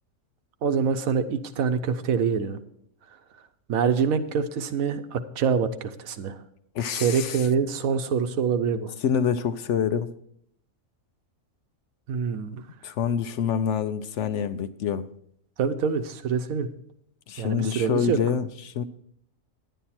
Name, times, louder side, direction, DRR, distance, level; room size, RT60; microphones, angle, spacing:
voice 1, 0.6-2.6 3.7-6.4 6.9-8.9 12.1-12.6 15.6-16.7 17.4-18.2, right 6 dB, 85° right, 1.2 m, -25 dB
voice 2, 6.7-7.5 9.0-10.1 12.8-15.1 17.3-18.8, left 7 dB, 70° left, 0.8 m, -26 dB
11.0 x 9.2 x 4.3 m
omnidirectional pair, 1.4 m